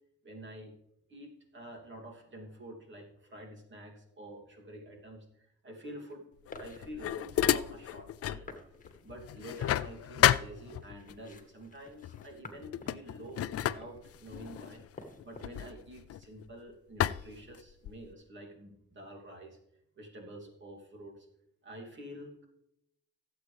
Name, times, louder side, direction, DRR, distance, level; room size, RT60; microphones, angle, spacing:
voice 1, 0.2-0.7 1.1-6.3 6.5-8.6 9.0-19.6 20.0-21.3 21.6-22.4, right 1 dB, 40° right, 0 dB, 3.0 m, -48 dB
sound 1, 5.8-6.1 6.5-7.4 8.0-8.1 8.4-15.6, left 3 dB, 25° left, 1.8 m, -52 dB
sound 2, 6.5-8.5 8.8-11.2 12.0-12.3 12.6-16.5 17.0-18.1, left 12 dB, 50° left, 0.4 m, -31 dB
17.0 x 8.1 x 3.5 m, 0.79 s
cardioid pair, 90°, 30 cm